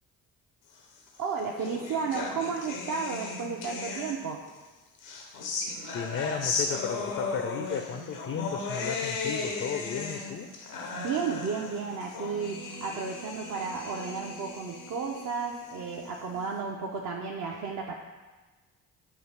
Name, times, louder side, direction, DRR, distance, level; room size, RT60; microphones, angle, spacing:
sound 1, 1.1-4.5 5.0-16.5, left 3 dB, 85° left, 0.6 m, -36 dB
voice 1, 1.2-4.4 11.0-17.9, right 5 dB, 50° right, -1 dB, 0.6 m, -33 dB
voice 2, 5.8-10.5, left 7 dB, 35° left, 6 dB, 0.4 m, -34 dB
6.7 x 2.4 x 3.2 m, 1.3 s
hypercardioid pair, 40°, 40 cm